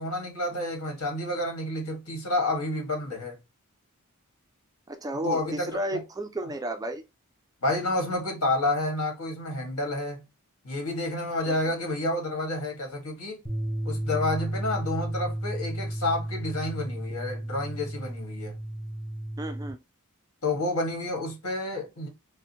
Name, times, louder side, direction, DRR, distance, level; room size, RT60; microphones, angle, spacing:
voice 1, 0.0-3.4 5.2-5.7 7.6-10.3 10.6-13.4 13.8-18.5 20.4-22.1, left 2 dB, 75° left, 1.5 m, -29 dB
voice 2, 4.9-7.0 11.5-11.6 19.4-19.8, right 1 dB, 15° right, 0.3 m, -33 dB
sound 1, 13.5-19.7, right 1 dB, 20° left, 1.4 m, -33 dB
4.7 x 2.1 x 2.7 m
head